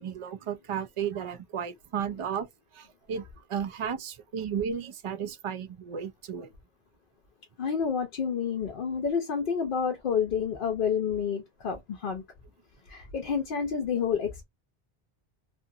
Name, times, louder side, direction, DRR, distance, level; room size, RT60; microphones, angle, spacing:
voice 1, 0.0-2.5 2.7-6.5, right 8 dB, 55° right, 0.3 m, -34 dB
voice 2, 7.6-12.2 12.9-14.4, left 6 dB, 60° left, 0.7 m, -29 dB
2.5 x 2.4 x 2.6 m
omnidirectional pair, 1.0 m